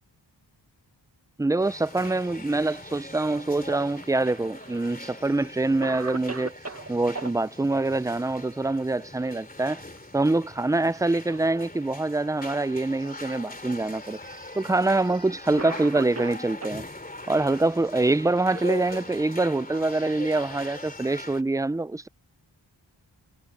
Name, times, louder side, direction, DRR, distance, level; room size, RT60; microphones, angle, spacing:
voice 1, 1.4-6.6 6.9-9.8 10.1-14.2 14.6-16.8 17.3-22.1, right 2 dB, 10° right, 0.4 m, -25 dB
sound 1, 1.6-21.4, left 2 dB, 20° left, 2.7 m, -41 dB
Cough, 4.0-4.9 5.4-5.5 5.8-7.3 9.2-9.6 10.0-10.1 10.9-11.6 12.4-12.5 13.5-13.6 14.8-14.9 15.6-16.8 17.8-19.2, right 4 dB, 35° right, 1.7 m, -39 dB
wide cardioid pair, 95°, 46 cm